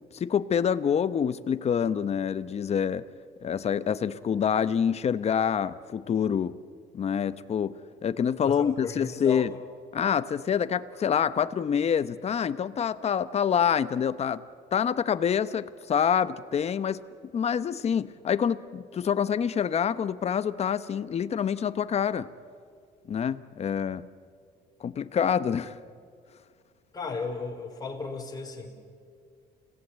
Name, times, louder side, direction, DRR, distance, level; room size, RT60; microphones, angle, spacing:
voice 1, 0.1-3.0 3.4-6.5 6.9-7.7 8.0-9.5 9.9-14.4 14.7-17.0 17.3-22.3 23.1-24.0 24.8-25.7, left 8 dB, 40° left, 14 dB, 0.9 m, -26 dB
voice 2, 8.5-9.6 23.8-24.1 26.9-28.7, left 4 dB, 25° left, 1 dB, 4.5 m, -35 dB
28.5 x 17.5 x 8.8 m, 2.2 s
cardioid pair, 110°, 17 cm